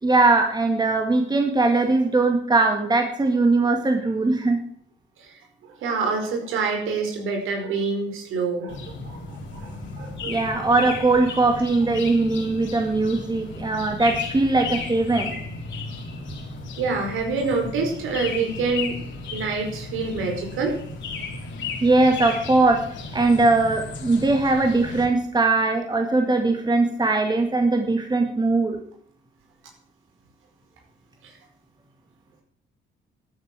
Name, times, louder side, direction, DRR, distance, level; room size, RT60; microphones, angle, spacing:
voice 1, 0.0-4.6 10.3-15.3 21.8-22.8 23.1-28.8, right 3 dB, 20° right, 3 dB, 2.2 m, -20 dB
voice 2, 5.6-10.3 16.8-19.0 19.3-20.8 31.2-31.3, right 4 dB, 85° right, 3 dB, 4.7 m, -27 dB
sound 1, 8.7-25.1, left 3 dB, 65° left, 4.1 m, -35 dB
12.5 x 9.7 x 7.5 m, 0.63 s
cardioid pair, 90°, 20 cm